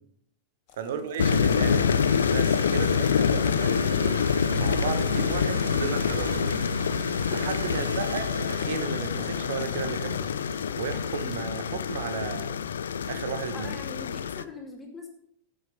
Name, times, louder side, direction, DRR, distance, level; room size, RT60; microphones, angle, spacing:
sound 1, 0.7-14.2, left 11 dB, 45° left, 0.9 m, -50 dB
voice 1, 0.8-1.9 2.3-4.3 4.5-6.6 7.3-10.4 10.8-12.6 13.1-13.7, right 7 dB, 55° right, 10 dB, 1.2 m, -34 dB
sound 2, 1.2-14.4, left 7 dB, 65° left, 0.4 m, -26 dB
sound 3, 1.2-11.6, right 5 dB, 75° right, 0.6 m, -37 dB
voice 2, 7.7-8.1 13.5-15.1, left 4 dB, 15° left, 1 dB, 2.5 m, -43 dB
12.5 x 7.7 x 5.4 m, 0.68 s
figure-of-eight pair, 90°, 0 cm